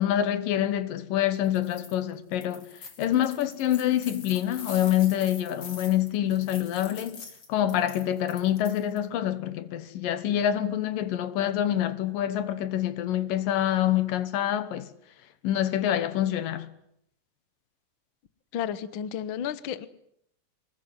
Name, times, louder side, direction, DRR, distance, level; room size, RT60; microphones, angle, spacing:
voice 1, 0.0-2.7 3.0-14.9 15.4-16.7, left 11 dB, 90° left, 3.0 m, -26 dB
sound 1, 1.4-2.0 2.3-9.0, left 5 dB, 40° left, 3.5 m, -45 dB
voice 2, 18.5-19.9, left 9 dB, 65° left, 1.2 m, -32 dB
24.5 x 20.5 x 9.7 m
omnidirectional pair, 3.8 m